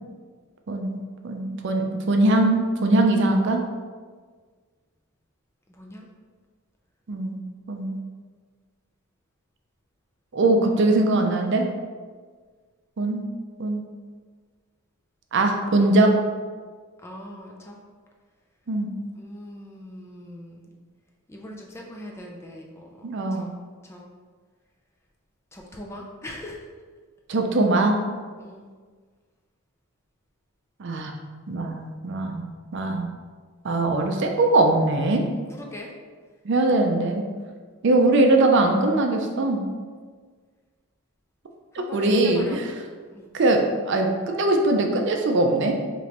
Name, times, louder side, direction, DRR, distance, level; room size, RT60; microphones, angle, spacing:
voice 1, 0.7-1.0 1.2-3.6 7.1-7.4 7.7-8.0 10.3-11.7 13.0-13.2 13.6-13.8 15.3-16.1 18.7-18.9 23.0-23.5 27.3-28.0 30.8-31.1 31.5-32.5 32.7-33.1 33.6-35.3 36.4-37.2 37.8-39.6 41.7-42.7 43.3-45.7, right 2 dB, 55° right, 3 dB, 0.4 m, -21 dB
voice 2, 5.7-6.1 17.0-17.8 19.1-20.7 21.3-23.5 23.8-24.0 25.5-26.7 28.4-28.7 35.5-35.9 41.7-42.6 43.1-43.3, left 1 dB, 10° left, -1 dB, 0.4 m, -41 dB
5.1 x 3.0 x 2.9 m, 1.6 s
head